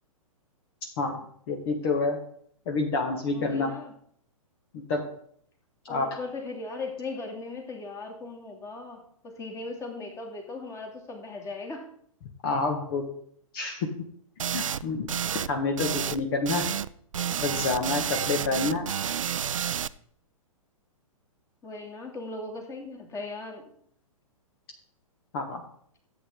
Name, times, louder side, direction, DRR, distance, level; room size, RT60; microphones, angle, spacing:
voice 1, 1.5-2.2 2.6-3.7 4.7-5.0 5.8-6.1 12.4-13.0 13.5-13.9 14.5-15.1 15.5-16.7 17.4-18.8 25.3-25.6, left 3 dB, 40° left, 3 dB, 1.7 m, -28 dB
voice 2, 3.3-3.9 5.9-11.9 18.4-18.9 21.6-23.6, left 3 dB, 15° left, 2 dB, 2.7 m, -38 dB
sound 1, 14.4-14.8 15.1-15.5 15.8-16.2 16.4-16.9 17.1-19.9, right 9 dB, 65° right, 0.5 m, -30 dB
14.5 x 8.5 x 3.9 m, 0.64 s
figure-of-eight pair, 115°, 18 cm